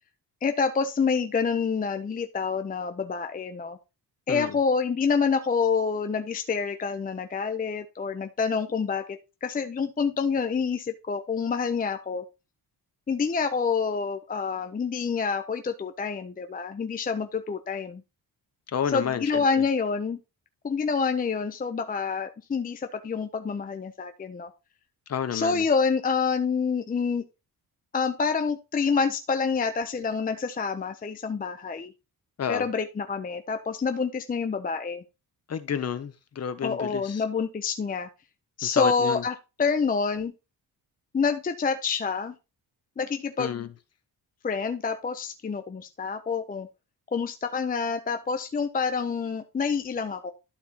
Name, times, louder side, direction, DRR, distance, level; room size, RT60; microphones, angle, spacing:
voice 1, 0.4-3.8 4.3-12.2 13.1-18.0 18.9-20.2 20.6-24.5 25.3-27.2 27.9-31.9 32.5-35.0 36.6-38.1 38.6-40.3 41.1-42.3 43.0-43.7 44.4-46.7 47.1-50.3, left 5 dB, 20° left, 0.6 m, -27 dB
voice 2, 18.7-19.4 25.1-25.6 32.4-32.7 35.5-37.2 38.6-39.2 43.4-43.7, left 8 dB, 40° left, 0.9 m, -30 dB
12.0 x 4.2 x 4.1 m
wide cardioid pair, 145°, 39 cm